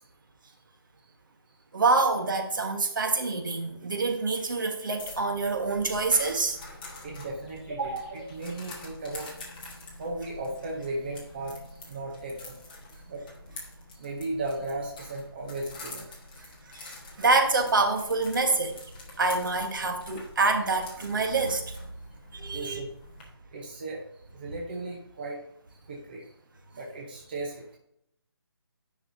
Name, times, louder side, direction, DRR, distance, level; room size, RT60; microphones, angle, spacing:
voice 1, 1.7-6.6 7.8-8.1 16.7-16.9 17.2-18.8 19.2-21.6 22.3-22.8, right 3 dB, 55° right, 5 dB, 1.3 m, -26 dB
sound 1, 5.0-23.2, left 2 dB, 20° left, 1.3 m, -46 dB
voice 2, 7.0-9.3 10.0-11.5 11.9-12.5 13.1-13.2 13.9-16.1 16.4-16.5 22.5-22.9 23.5-24.0 24.3-25.4 25.9-26.3 26.7-27.8, right 2 dB, 25° right, -1 dB, 0.8 m, -36 dB
10.0 x 5.8 x 2.7 m, 0.74 s
hypercardioid pair, 175°, 13 cm